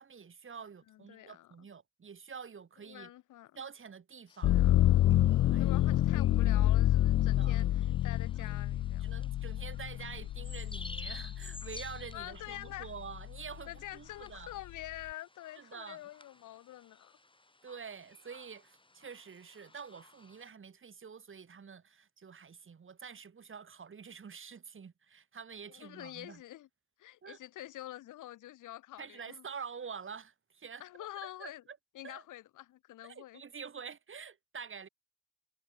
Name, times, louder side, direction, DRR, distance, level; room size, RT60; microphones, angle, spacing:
voice 1, 0.0-3.1 3.6-4.5 5.4-5.7 7.4-7.6 8.4-8.6 9.0-14.6 15.6-16.0 17.6-26.4 27.2-27.4 29.0-30.8 31.2-31.8 32.0-32.2 33.0-34.9, right 6 dB, 40° right, 7.1 m, -47 dB
voice 2, 0.9-1.7 2.9-3.5 4.5-4.9 5.6-9.2 12.1-12.9 13.7-17.2 25.7-26.7 27.0-29.4 30.8-31.6 31.9-33.4, left 14 dB, 85° left, 7.5 m, -47 dB
sound 1, 4.3-20.5, left 2 dB, 15° left, 6.9 m, -54 dB
sound 2, 4.4-12.2 12.7-13.5, left 13 dB, 50° left, 0.4 m, -28 dB
cardioid pair, 90°, 30 cm